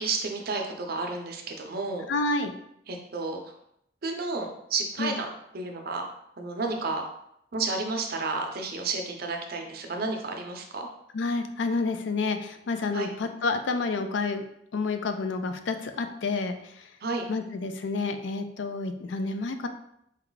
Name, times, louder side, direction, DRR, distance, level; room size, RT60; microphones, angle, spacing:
voice 1, 0.0-2.1 2.9-3.4 4.0-5.3 5.5-6.1 6.4-7.1 7.5-10.9 12.9-13.1 17.0-17.3, right 3 dB, 55° right, 3 dB, 0.6 m, -31 dB
voice 2, 2.1-2.5 5.0-5.1 11.1-14.4 14.7-16.6 17.3-19.7, left 3 dB, 75° left, 8 dB, 0.4 m, -29 dB
4.3 x 2.3 x 3.9 m, 0.75 s
head